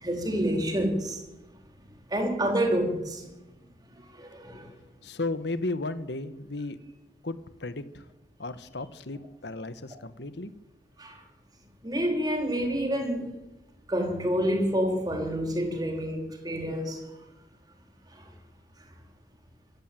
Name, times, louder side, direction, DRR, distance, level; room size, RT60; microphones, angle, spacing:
voice 1, 0.0-1.2 2.1-3.2 4.1-4.7 11.0-11.2 11.8-13.4 13.9-17.0 18.2-18.3, equal, 20° right, 4.1 m, -28 dB
voice 2, 5.0-6.8 7.2-8.0 8.4-10.5, left 2 dB, 70° left, 1.4 m, -34 dB
25.0 x 15.5 x 9.2 m
head